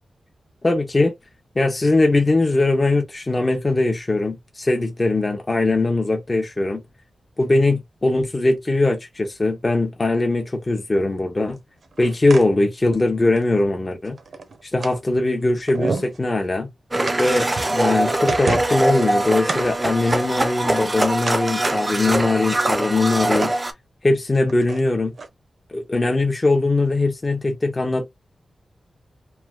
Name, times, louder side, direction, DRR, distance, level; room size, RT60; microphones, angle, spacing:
voice 1, 0.6-1.1 1.6-6.8 7.4-11.6 12.0-14.2 14.7-16.7 17.2-23.5 24.0-25.1 25.7-28.1, left 2 dB, 25° left, 0.6 m, -20 dB
sound 1, 11.8-12.4 12.9-13.0 13.4-13.5 14.0-15.0 15.4-15.5 15.7-16.2 17.1-17.8 18.1-18.9 19.5-19.6 20.1-20.8 21.1-21.8 22.2-22.3 22.7-23.5 24.5-24.8 25.2-25.3, right 4 dB, 55° right, 0.7 m, -30 dB
Domestic sounds home sounds, 16.9-23.7, right 1 dB, 20° right, 0.4 m, -22 dB
3.2 x 2.6 x 2.3 m
wide cardioid pair, 145°, 0 cm